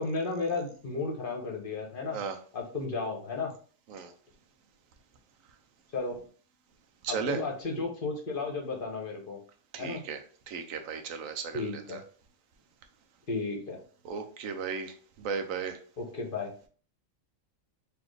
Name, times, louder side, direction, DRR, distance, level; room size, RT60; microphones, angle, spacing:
voice 1, 0.0-2.2 2.5-3.5 5.9-6.1 7.1-9.4 9.8-10.0 11.5-12.0 13.3-13.8 16.0-16.5, left 3 dB, 45° left, 2 dB, 0.9 m, -33 dB
voice 2, 7.0-7.4 9.7-12.0 14.0-15.8, right 5 dB, 80° right, 6 dB, 1.1 m, -35 dB
4.1 x 2.9 x 3.2 m, 0.43 s
omnidirectional pair, 1.4 m